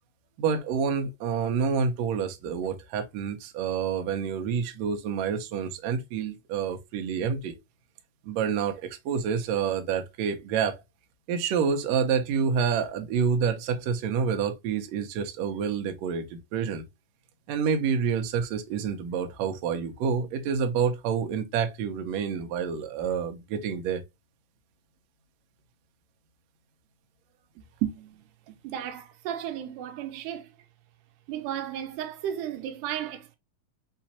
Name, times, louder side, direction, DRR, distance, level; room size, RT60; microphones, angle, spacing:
voice 1, 0.4-7.6 8.2-10.8 11.3-16.9 17.5-24.0 27.8-28.1 28.5-28.6, right 6 dB, 70° right, 1.7 m, -28 dB
voice 2, 28.6-30.5 31.3-33.4, right 10 dB, 90° right, 2.2 m, -34 dB
5.7 x 3.0 x 2.8 m
omnidirectional pair, 3.7 m